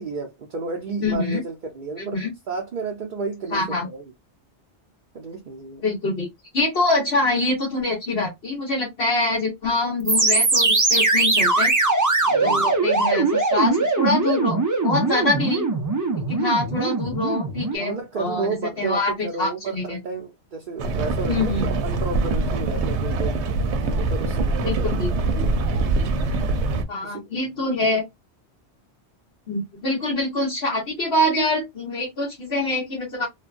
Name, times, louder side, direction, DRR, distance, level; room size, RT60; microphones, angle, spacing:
voice 1, 0.0-4.0 5.1-5.8 12.2-12.7 16.0-16.6 17.8-23.4 23.9-24.9 25.4-26.2 27.0-28.0, right 4 dB, 55° right, 0.7 m, -32 dB
voice 2, 1.0-1.4 2.0-2.3 3.5-3.9 5.8-6.3 6.5-11.7 12.4-15.7 16.3-18.5 18.8-19.1 19.4-20.0 21.3-21.7 24.6-25.1 25.4-25.5 26.9-28.0 29.5-33.3, left 2 dB, 65° left, 1.5 m, -25 dB
sound 1, 10.1-17.7, right 3 dB, 30° right, 0.3 m, -21 dB
sound 2, 20.8-26.8, right 3 dB, 90° right, 0.9 m, -24 dB
3.1 x 2.2 x 2.3 m
omnidirectional pair, 1.1 m